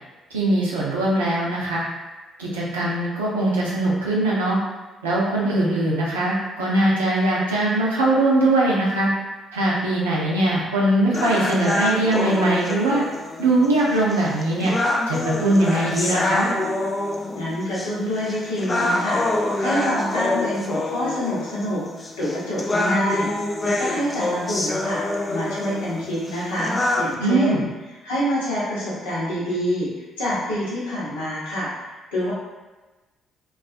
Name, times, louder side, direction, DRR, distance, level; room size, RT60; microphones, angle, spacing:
voice 1, 0.3-1.8 2.4-4.6 5.0-9.1 9.5-13.0 13.4-14.7 15.1-16.5 27.2-27.6, right 1 dB, 90° right, -5 dB, 0.5 m, -21 dB
sound 1, 11.1-27.1, left 2 dB, 30° left, 0.3 m, -26 dB
voice 2, 17.3-21.8 22.2-25.0 25.3-27.7 28.0-29.9 30.2-32.3, equal, 80° left, -8 dB, 0.8 m, -26 dB
2.3 x 2.3 x 2.4 m, 1.2 s
hypercardioid pair, 45°, 0 cm